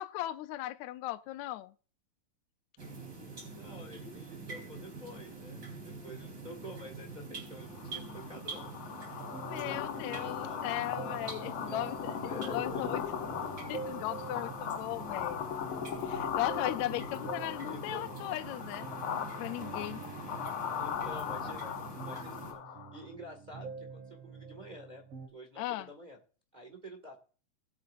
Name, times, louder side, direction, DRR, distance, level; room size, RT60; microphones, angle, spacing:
voice 1, 0.0-1.7 9.4-13.0 13.7-15.4 16.0-18.9 19.4-20.0 25.6-25.9, left 15 dB, 80° left, 1.9 m, -37 dB
sound 1, 2.8-22.5, right 3 dB, 35° right, 4.1 m, -45 dB
voice 2, 3.5-8.7 9.6-10.8 11.4-13.0 17.4-18.0 20.8-22.6 22.9-26.2 26.5-27.2, equal, 20° right, 1.6 m, -49 dB
sound 2, 7.7-23.1, left 8 dB, 65° left, 1.5 m, -39 dB
sound 3, 9.2-25.3, right 4 dB, 55° right, 2.6 m, -47 dB
20.5 x 7.9 x 2.6 m
omnidirectional pair, 3.4 m